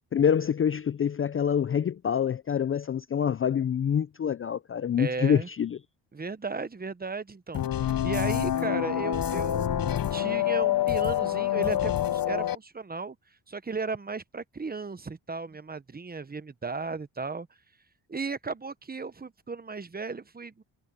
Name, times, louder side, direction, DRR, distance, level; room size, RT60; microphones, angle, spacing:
voice 1, 0.1-5.8, left 8 dB, 30° left, 0.5 m, -26 dB
voice 2, 5.0-5.5 6.1-13.2 13.5-17.5 18.1-20.6, right 4 dB, 20° right, 1.0 m, -35 dB
sound 1, 7.5-12.6, left 11 dB, 50° left, 1.0 m, -27 dB
cardioid pair, 85°, 44 cm